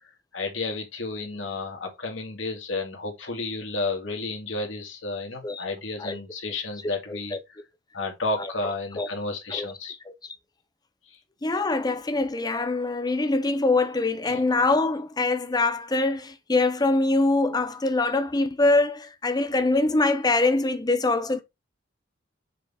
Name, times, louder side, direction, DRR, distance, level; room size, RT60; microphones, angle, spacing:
voice 1, 0.3-7.4 7.9-9.9 11.1-11.2 14.2-14.4, left 3 dB, 80° left, 2.2 m, -32 dB
voice 2, 7.1-7.4 9.0-9.1 9.5-9.7 11.4-21.4, left 2 dB, 20° left, 0.6 m, -24 dB
6.5 x 3.7 x 4.2 m
head